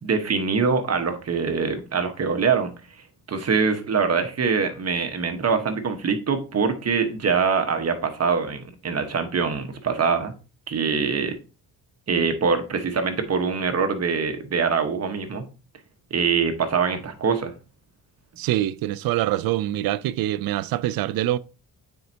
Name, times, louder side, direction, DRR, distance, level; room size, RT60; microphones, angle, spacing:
voice 1, 0.0-2.7 3.3-10.3 10.7-11.4 12.1-15.4 16.1-17.5, right 5 dB, 45° right, 1.3 m, -24 dB
voice 2, 18.4-21.4, right 14 dB, 75° right, 0.5 m, -24 dB
9.1 x 4.5 x 2.8 m
cardioid pair, 80°, 36 cm